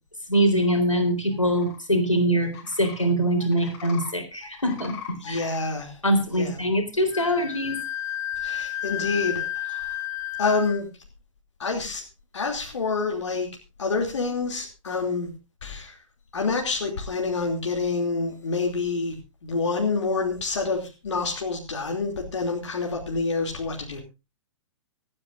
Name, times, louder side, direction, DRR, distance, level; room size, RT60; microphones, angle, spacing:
voice 1, 0.3-4.9 5.3-5.4 6.0-7.8, equal, 90° left, 5 dB, 4.0 m, -23 dB
sound 1, 1.3-1.8 2.4-3.0 3.4-4.1 4.4-5.6, left 8 dB, 35° left, 5.4 m, -41 dB
voice 2, 5.2-6.0 6.4-6.6 8.4-10.0 10.4-10.9 11.6-12.0 12.3-13.5 13.8-15.3 15.6-16.0 16.3-24.0, left 4 dB, 65° left, 1 dB, 3.0 m, -27 dB
Wind instrument woodwind instrument, 7.1-10.8, left 12 dB, 20° left, 0.8 m, -31 dB
25.5 x 9.8 x 2.6 m, 0.29 s
figure-of-eight pair, 115°, 16 cm